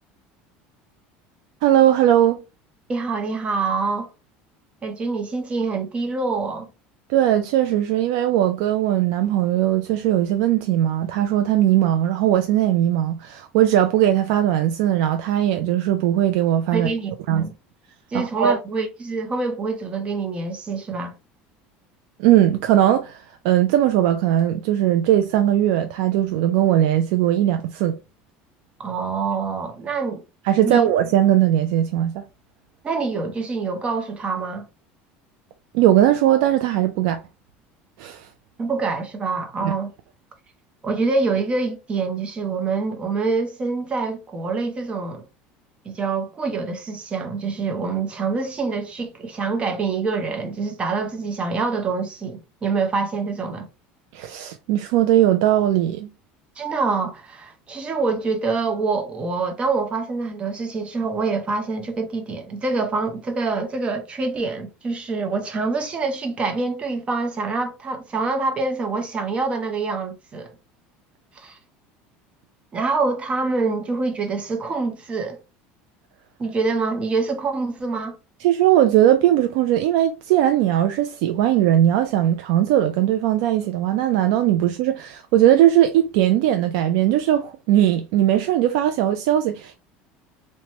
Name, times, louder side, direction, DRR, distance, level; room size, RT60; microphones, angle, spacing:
voice 1, 1.6-2.4 7.1-16.9 17.3-17.5 18.1-18.6 22.2-28.0 30.4-32.2 35.7-37.2 38.0-38.3 39.6-39.7 54.1-56.1 78.4-89.8, right 12 dB, 75° right, 0.3 m, -19 dB
voice 2, 2.9-4.1 4.8-6.7 16.7-17.1 17.4-17.5 18.1-21.1 28.8-30.2 30.6-30.9 32.8-34.7 38.6-39.9 40.8-45.2 45.8-53.7 56.6-70.5 71.3-71.6 72.7-75.4 76.4-78.2, right 4 dB, 25° right, 0.7 m, -25 dB
2.9 x 2.1 x 2.8 m
supercardioid pair, 130°, 4 cm